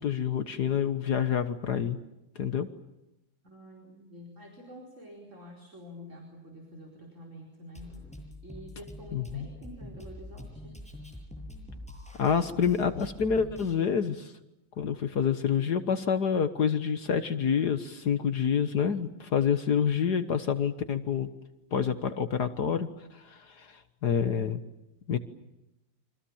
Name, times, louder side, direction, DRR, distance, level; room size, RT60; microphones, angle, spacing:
voice 1, 0.0-2.0 2.4-2.7 9.1-9.4 12.2-14.3 14.8-21.3 21.7-22.9 23.1-24.6 25.1-25.2, left 7 dB, 60° left, 11 dB, 1.8 m, -27 dB
voice 2, 3.4-8.1 8.4-10.8, equal, 40° right, 0 dB, 5.0 m, -48 dB
Drum kit, 7.7-13.7, left 1 dB, 5° left, 7.8 m, -45 dB
29.0 x 25.5 x 7.3 m, 0.91 s
omnidirectional pair, 2.0 m